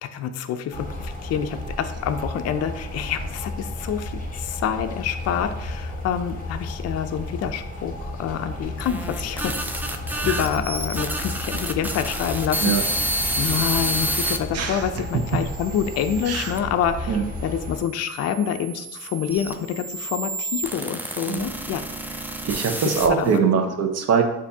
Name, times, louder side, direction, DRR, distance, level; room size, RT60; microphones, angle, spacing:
voice 1, 0.0-9.5 10.3-17.1 17.4-21.8 23.2-23.4 23.7-23.8, left 8 dB, 55° left, 8 dB, 0.4 m, -27 dB
sound 1, 0.7-17.8, left 1 dB, 25° left, 1.3 m, -33 dB
sound 2, 8.6-14.4 15.0-16.6 17.4-23.4, right 1 dB, 5° right, 0.4 m, -30 dB
voice 2, 14.5-14.9 16.3-16.5 17.1-17.2 21.3-21.5 22.4-24.2, right 6 dB, 55° right, 5 dB, 0.7 m, -22 dB
6.8 x 2.6 x 2.7 m, 0.98 s
cardioid pair, 90°, 30 cm